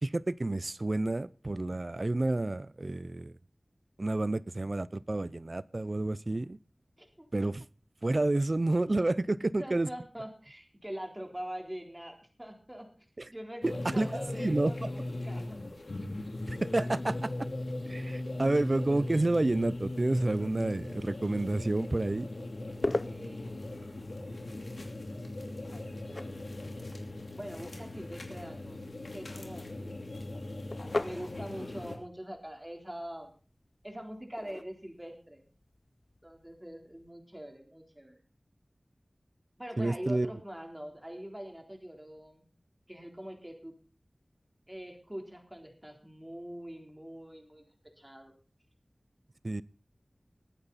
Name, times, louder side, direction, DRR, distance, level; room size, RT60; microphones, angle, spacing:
voice 1, 0.0-3.3 4.0-6.6 7.3-7.6 8.0-9.9 13.2-13.3 13.6-14.9 16.5-17.5 17.9-22.3 39.8-40.3 49.4-49.6, right 2 dB, 50° right, 0.6 m, -30 dB
voice 2, 9.6-12.9 13.3-15.6 23.1-23.7 25.2-26.4 27.3-28.8 29.1-30.1 31.0-33.3 33.8-35.4 36.2-38.2 39.6-42.4 42.9-43.7 44.7-48.3, equal, 15° right, 3.6 m, -44 dB
sound 1, 13.6-32.0, left 2 dB, 75° left, 2.7 m, -39 dB
jar and ceramic set down, 22.7-37.1, left 2 dB, 50° left, 0.7 m, -43 dB
21.0 x 8.9 x 4.1 m
wide cardioid pair, 40°, 0 cm